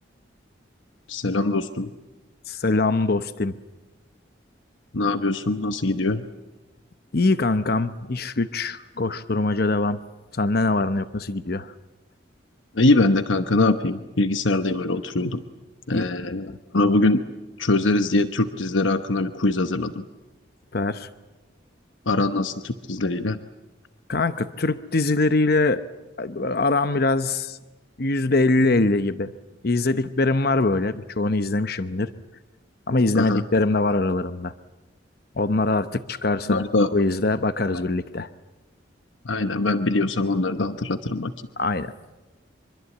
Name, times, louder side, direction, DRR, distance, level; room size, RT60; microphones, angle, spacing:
voice 1, 1.1-1.9 4.9-6.2 12.7-15.4 15.9-17.2 17.6-20.0 22.1-23.4 33.1-33.4 36.5-36.9 39.2-41.3, left 2 dB, 80° left, 9 dB, 1.0 m, -22 dB
voice 2, 2.5-3.5 7.1-10.0 10.3-11.7 15.9-16.1 16.5-16.6 20.7-21.1 24.1-25.8 26.2-27.6 28.0-29.3 29.6-32.1 32.9-34.5 35.4-36.6 36.9-38.3 41.6-41.9, left 2 dB, 55° left, 12 dB, 0.8 m, -23 dB
25.0 x 24.0 x 8.4 m, 1.1 s
head